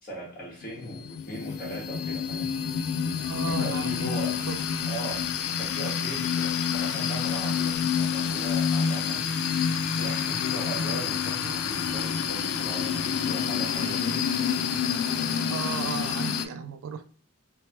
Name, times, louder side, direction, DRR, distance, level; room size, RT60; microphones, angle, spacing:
voice 1, 0.0-2.5 3.5-4.4 4.9-9.3 10.0-14.2, right 1 dB, 45° left, 1.3 m, -39 dB
sound 1, 0.6-16.5, left 7 dB, 80° left, 0.3 m, -28 dB
voice 2, 3.2-4.1 4.5-4.7 15.5-17.0, right 6 dB, 75° right, 0.3 m, -35 dB
3.0 x 2.1 x 2.9 m
head